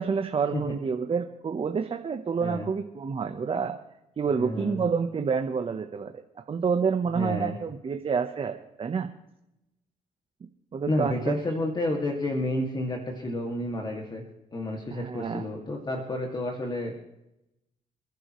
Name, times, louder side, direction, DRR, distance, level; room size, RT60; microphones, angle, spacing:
voice 1, 0.0-3.8 4.2-6.1 6.5-9.1 10.7-11.4 14.9-15.4, right 6 dB, 40° right, 6 dB, 1.1 m, -28 dB
voice 2, 4.3-4.8 7.1-7.6 10.9-14.2 14.5-16.9, left 1 dB, 30° left, 1 dB, 2.2 m, -30 dB
28.5 x 11.0 x 3.2 m, 0.88 s
cardioid pair, 100°, 15 cm